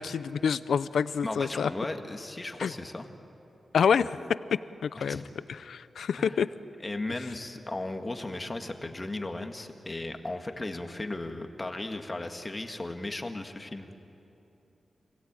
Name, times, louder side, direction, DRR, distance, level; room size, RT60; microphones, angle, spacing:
voice 1, 0.0-1.7 2.6-2.7 3.7-4.2 4.8-5.2 5.5-6.5, left 7 dB, 90° left, 15 dB, 0.6 m, -27 dB
voice 2, 1.2-3.1 4.0-4.1 5.0-5.2 6.2-6.4 6.8-13.9, left 2 dB, 25° left, 5 dB, 1.7 m, -36 dB
27.0 x 17.0 x 8.9 m, 2.9 s
cardioid pair, 75°, 0 cm